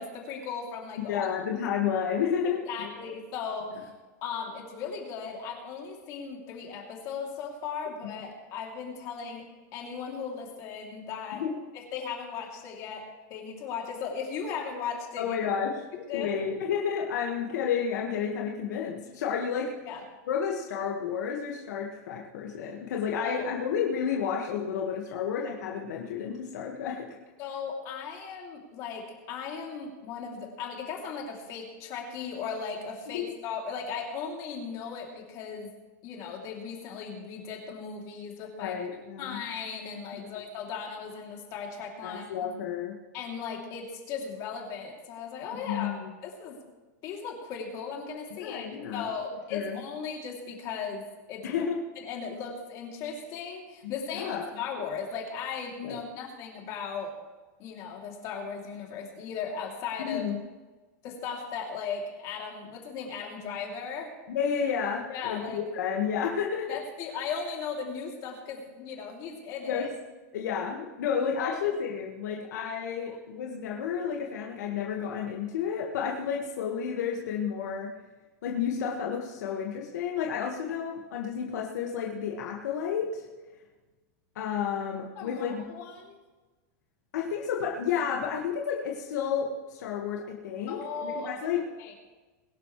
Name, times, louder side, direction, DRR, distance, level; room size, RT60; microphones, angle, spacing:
voice 1, 0.0-1.3 1.5-1.6 2.4-3.9 4.2-11.5 11.7-15.4 16.1-16.4 19.9-20.0 23.2-23.4 27.4-35.7 36.0-38.8 39.2-42.5 43.1-46.0 46.2-46.6 47.0-51.6 52.0-57.1 57.6-60.2 61.0-64.1 65.1-65.6 66.7-69.9 71.4-71.6 85.1-86.2 90.7-91.9, left 6 dB, 35° left, 0 dB, 3.1 m, -37 dB
voice 2, 1.1-2.9 11.4-11.5 15.2-15.7 16.1-19.7 20.3-27.1 33.1-33.2 38.6-39.4 42.0-42.9 45.7-46.1 48.4-49.1 49.5-49.8 51.4-51.8 54.1-54.4 55.8-56.0 60.1-60.4 64.3-66.8 69.6-69.9 70.3-77.9 78.4-83.3 84.4-85.6 87.1-91.6, left 7 dB, 75° left, -1 dB, 1.8 m, -31 dB
22.0 x 11.5 x 3.3 m, 1.2 s
supercardioid pair, 160°, 9 cm